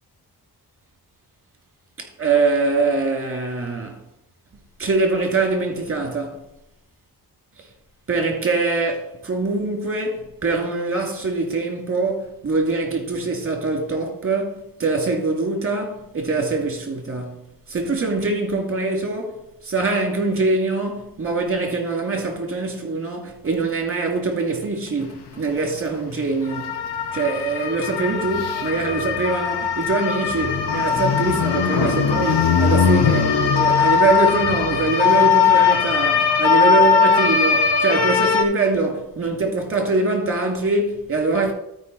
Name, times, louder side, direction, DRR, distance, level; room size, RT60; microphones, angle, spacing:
voice 1, 2.0-4.0 4.8-6.4 7.6-7.7 8.1-17.4 17.7-26.7 27.1-41.5, right 3 dB, 35° right, 2.5 m, -23 dB
sound 1, 25.3-25.4 25.8-25.9 26.3-38.4, left 6 dB, 90° left, 1.2 m, -19 dB
12.5 x 5.1 x 4.1 m
wide cardioid pair, 100°, 38 cm